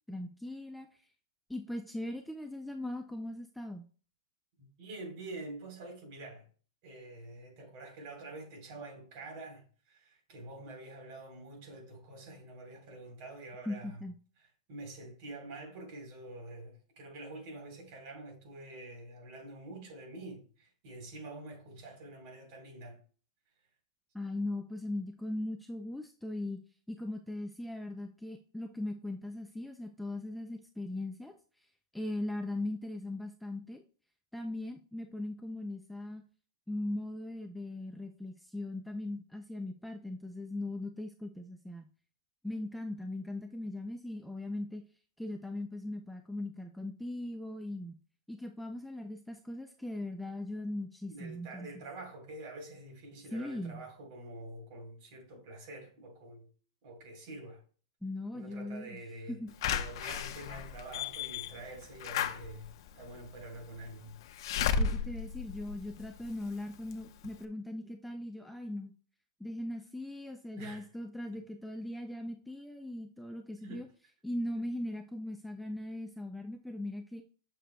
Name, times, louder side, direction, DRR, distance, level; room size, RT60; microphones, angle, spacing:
voice 1, 0.1-0.9 1.5-3.8 13.7-14.2 24.1-26.6 26.9-31.3 31.9-33.8 34.3-36.2 36.7-41.9 42.4-44.8 45.2-48.0 48.3-51.7 53.3-53.9 58.0-59.0 59.3-59.5 64.7-68.9 69.4-73.9 74.2-77.2, left 1 dB, ahead, 0.4 m, -39 dB
voice 2, 4.6-6.5 6.8-14.0 14.7-23.0 51.1-56.5 56.8-57.6 58.3-64.2 70.5-70.9 73.6-73.8, right 2 dB, 45° right, 3.6 m, -47 dB
Slam / Alarm, 59.6-66.4 66.9-67.0 67.2-67.3, left 6 dB, 60° left, 0.8 m, -34 dB
9.9 x 6.7 x 2.2 m
supercardioid pair, 155°, 3 cm